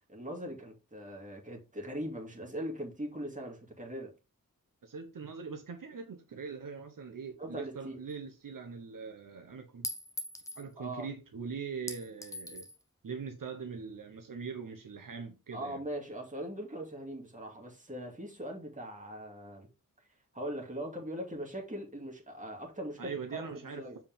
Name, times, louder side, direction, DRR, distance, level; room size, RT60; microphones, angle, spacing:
voice 1, 0.1-4.1 7.4-8.0 10.8-11.1 15.5-19.7 20.3-24.0, equal, 20° right, 2.4 m, -40 dB
voice 2, 4.8-9.9 10.5-12.7 13.0-15.8 23.0-23.8, right 5 dB, 65° right, 1.0 m, -42 dB
Chink clink, 8.1-8.2 9.8-10.7 11.9-12.8, left 1 dB, 10° left, 0.9 m, -40 dB
7.3 x 4.8 x 3.6 m
wide cardioid pair, 100°, 35 cm